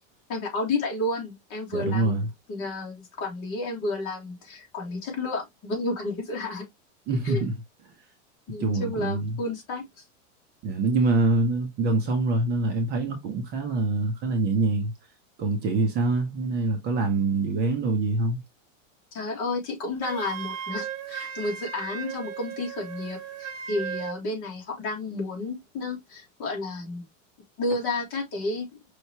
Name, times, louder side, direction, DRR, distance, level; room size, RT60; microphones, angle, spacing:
voice 1, 0.3-2.2 2.5-6.7 7.2-7.5 8.5-9.9 19.1-27.0 27.6-28.7, left 2 dB, 35° left, 2.0 m, -31 dB
voice 2, 1.7-2.3 7.1-7.5 8.6-9.4 10.6-14.9 15.4-18.4, right 3 dB, 25° right, 0.9 m, -25 dB
Wind instrument woodwind instrument, 20.0-24.2, right 8 dB, 70° right, 1.4 m, -36 dB
5.6 x 3.2 x 2.9 m
supercardioid pair, 165°, 39 cm